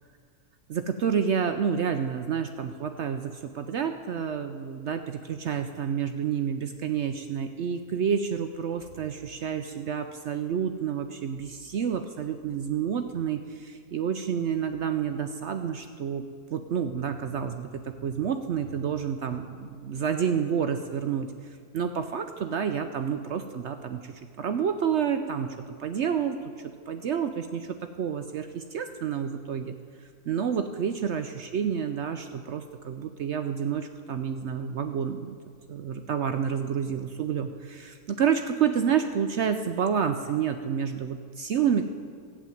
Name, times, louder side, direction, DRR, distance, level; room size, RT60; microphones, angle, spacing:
voice 1, 0.7-16.2 16.5-21.3 21.7-29.7 30.3-35.4 35.7-41.9, right 7 dB, 65° right, 8 dB, 0.7 m, -29 dB
14.0 x 7.4 x 9.1 m, 2.1 s
omnidirectional pair, 1.6 m